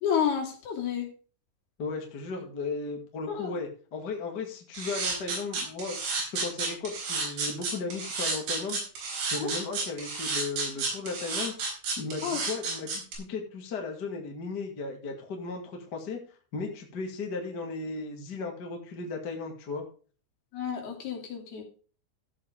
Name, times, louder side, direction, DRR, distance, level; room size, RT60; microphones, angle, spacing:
voice 1, 0.0-1.1 3.3-3.5 9.3-9.5 12.2-12.4 20.5-21.6, left 8 dB, 60° left, 1 dB, 4.5 m, -30 dB
voice 2, 1.8-8.8 9.3-11.5 12.0-16.2 16.5-19.8, left 4 dB, 35° left, 2 dB, 1.6 m, -36 dB
sound 1, 4.7-13.2, right 4 dB, 70° right, 6.3 m, -31 dB
14.5 x 7.9 x 3.6 m, 0.39 s
omnidirectional pair, 5.3 m